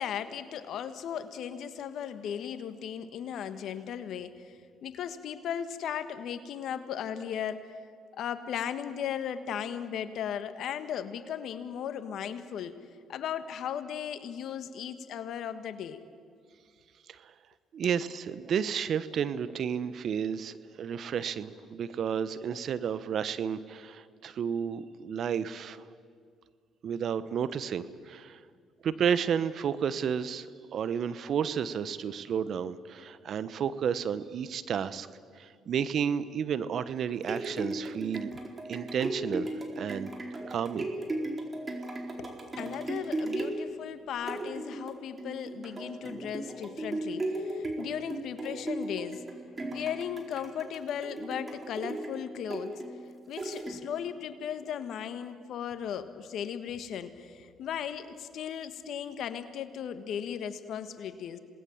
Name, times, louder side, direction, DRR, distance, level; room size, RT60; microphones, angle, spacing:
voice 1, 0.0-7.8 8.2-12.8 13.1-16.0 42.2-49.2 49.7-52.8 53.3-61.4, left 8 dB, 70° left, 11 dB, 1.5 m, -36 dB
voice 2, 17.7-25.9 26.8-28.4 28.8-30.5 30.7-35.1 35.4-38.3 38.7-40.1 40.5-40.9, right 7 dB, 60° right, 15 dB, 1.0 m, -32 dB
sound 1, 37.0-54.1 54.6-54.7, right 1 dB, 30° right, 4.4 m, -37 dB
27.0 x 19.5 x 7.2 m, 2.2 s
hypercardioid pair, 55°, 0 cm